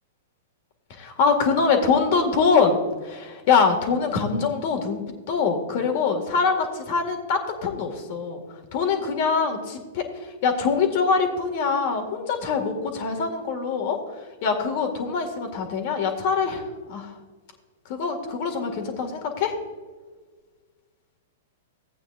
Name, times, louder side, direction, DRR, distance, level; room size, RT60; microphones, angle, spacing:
voice 1, 0.9-5.0 5.3-8.4 8.7-14.0 14.4-17.1 17.9-19.5, left 5 dB, 50° left, 5 dB, 2.0 m, -24 dB
15.5 x 8.8 x 2.6 m, 1.4 s
hypercardioid pair, 110°, 0 cm